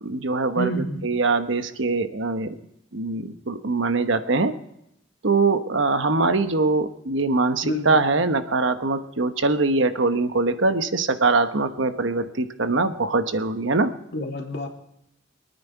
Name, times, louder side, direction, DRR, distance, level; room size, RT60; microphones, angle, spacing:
voice 1, 0.0-0.7 1.0-2.6 2.9-4.5 5.2-13.9, right 3 dB, 75° right, 9 dB, 1.1 m, -22 dB
voice 2, 0.6-1.0 7.6-8.0 14.1-14.7, equal, 55° left, 1 dB, 2.7 m, -28 dB
24.0 x 9.5 x 4.7 m, 0.81 s
head